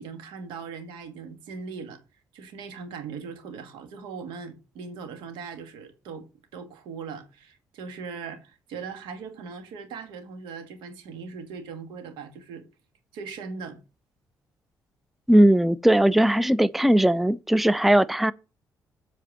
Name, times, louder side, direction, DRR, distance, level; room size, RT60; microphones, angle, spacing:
voice 1, 0.0-2.0 2.3-12.7 13.1-13.8, right 5 dB, 80° right, 1.8 m, -39 dB
voice 2, 15.3-18.3, right 1 dB, ahead, 0.5 m, -19 dB
8.1 x 4.5 x 7.2 m
supercardioid pair, 55°, 8 cm